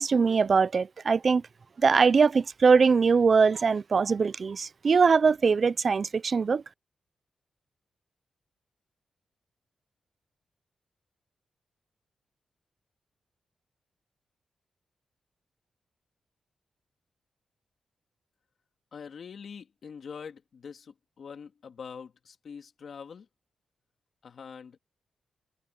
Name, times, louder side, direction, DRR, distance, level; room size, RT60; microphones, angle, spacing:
voice 1, 0.0-1.4 1.8-6.6, right 5 dB, 50° right, 0.5 m, -22 dB
voice 2, 18.9-23.3 24.2-24.8, left 6 dB, 65° left, 2.2 m, -44 dB
open air
cardioid pair, 75°, 0 cm